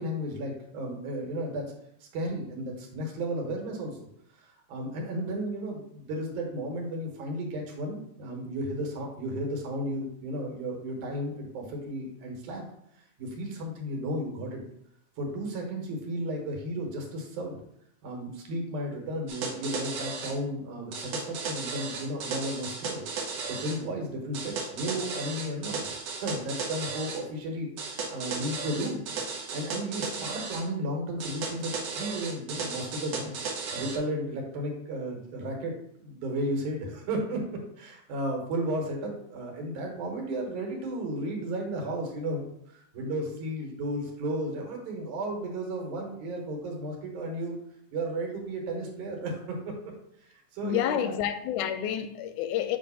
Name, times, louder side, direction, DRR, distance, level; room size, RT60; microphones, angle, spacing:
voice 1, 0.0-1.7 2.0-4.0 4.4-12.6 13.2-14.6 15.2-17.6 18.0-23.0 23.5-29.0 29.5-33.3 33.7-35.7 36.0-47.5 47.9-49.9 50.2-51.1, right 1 dB, 85° right, 2.7 m, -34 dB
sound 1, 19.3-20.4 20.9-23.8 24.3-27.2 27.8-30.6 31.2-34.0, right 4 dB, 65° right, 1.7 m, -35 dB
voice 2, 50.6-52.8, left 10 dB, 85° left, 2.0 m, -29 dB
7.1 x 2.5 x 5.5 m
omnidirectional pair, 3.4 m